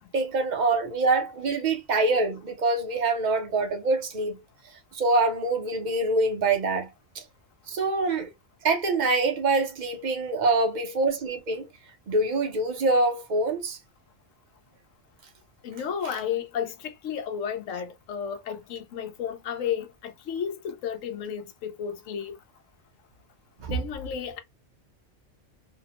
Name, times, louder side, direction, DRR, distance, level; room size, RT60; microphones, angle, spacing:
voice 1, 0.1-4.4 4.9-6.9 7.1-7.2 7.7-8.3 8.6-11.7 12.1-13.8 23.6-23.8, right 3 dB, 45° right, 0.7 m, -25 dB
voice 2, 15.6-22.4 23.7-24.4, left 8 dB, 85° left, 1.0 m, -33 dB
2.8 x 2.0 x 2.8 m
omnidirectional pair, 1.3 m